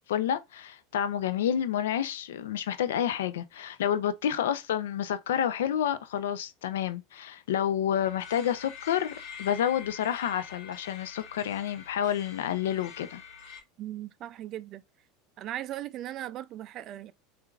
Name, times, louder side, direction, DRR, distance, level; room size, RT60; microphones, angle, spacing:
voice 1, 0.1-9.1 9.4-13.2, left 10 dB, 90° left, 0.5 m, -29 dB
sound 1, 8.0-13.6, left 6 dB, 55° left, 1.5 m, -46 dB
voice 2, 13.8-14.8 15.4-17.1, right 13 dB, 45° right, 0.3 m, -38 dB
4.4 x 2.5 x 2.4 m
supercardioid pair, 115°, 0 cm